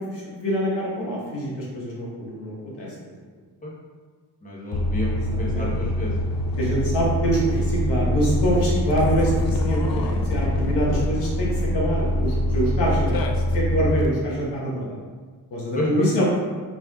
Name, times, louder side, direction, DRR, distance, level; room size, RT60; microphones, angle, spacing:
voice 1, 0.0-2.9 5.2-5.7 6.6-13.2 13.5-15.0 15.5-16.2, equal, 85° left, -5 dB, 1.5 m, -25 dB
voice 2, 4.4-6.1 15.8-16.1, left 2 dB, 20° left, -5 dB, 1.2 m, -29 dB
sound 1, 4.7-14.1, left 1 dB, 60° left, 0.5 m, -24 dB
5.1 x 4.3 x 2.4 m, 1.5 s
wide cardioid pair, 115°, 41 cm